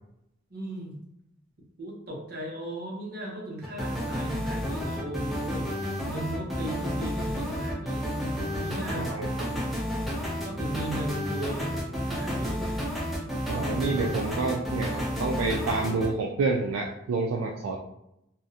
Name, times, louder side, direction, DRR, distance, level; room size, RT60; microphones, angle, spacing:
voice 1, 0.5-1.0 1.8-5.7 6.0-8.1 8.6-9.7 10.4-12.6, right 1 dB, 50° right, -2 dB, 0.6 m, -37 dB
sound 1, 3.6-16.1, equal, ahead, 0.4 m, -31 dB
voice 2, 9.0-9.5 13.5-17.8, right 3 dB, 90° right, 0 dB, 0.3 m, -28 dB
2.4 x 2.0 x 2.6 m, 0.80 s
head